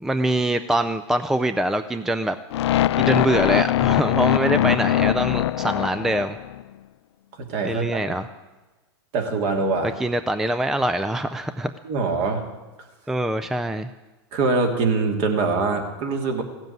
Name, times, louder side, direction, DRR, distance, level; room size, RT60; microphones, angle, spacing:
voice 1, 0.0-2.4 3.0-6.4 7.6-8.3 10.0-11.7 13.1-13.9, right 1 dB, 5° right, 11 dB, 0.4 m, -24 dB
sound 1, 2.5-6.6, left 12 dB, 75° left, 0.4 m, -21 dB
voice 2, 7.4-8.2 9.1-9.9 11.8-12.4 14.3-16.4, right 4 dB, 50° right, 4 dB, 2.6 m, -23 dB
16.0 x 7.5 x 9.3 m, 1.2 s
hypercardioid pair, 130°, 14 cm